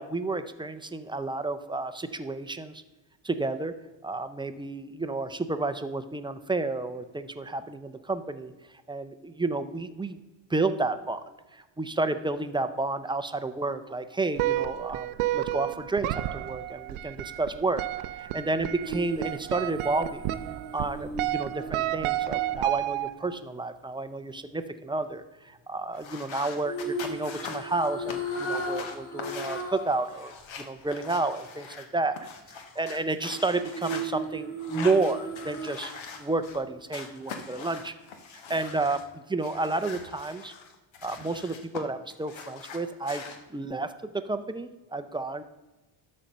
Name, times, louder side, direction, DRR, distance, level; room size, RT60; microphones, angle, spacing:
voice 1, 0.0-2.8 3.2-3.7 4.0-8.5 8.9-10.2 10.5-17.8 18.1-20.2 20.7-32.3 32.8-35.9 36.2-37.9 38.5-40.5 41.0-43.2 43.5-45.4, right 3 dB, 10° right, 9 dB, 0.5 m, -31 dB
sound 1, 14.4-23.3, right 14 dB, 80° right, 0.6 m, -31 dB
sound 2, 18.8-23.0 26.6-30.0 30.4-30.5 33.3-36.2 36.5-36.7, right 2 dB, 25° left, 2.2 m, -36 dB
sound 3, 25.9-31.8 32.1-34.1 34.6-36.6 36.9-39.0 39.4-41.8 42.1-43.4, left 5 dB, 65° left, 1.5 m, -42 dB
12.5 x 4.4 x 5.3 m, 1.1 s
cardioid pair, 105°, 50 cm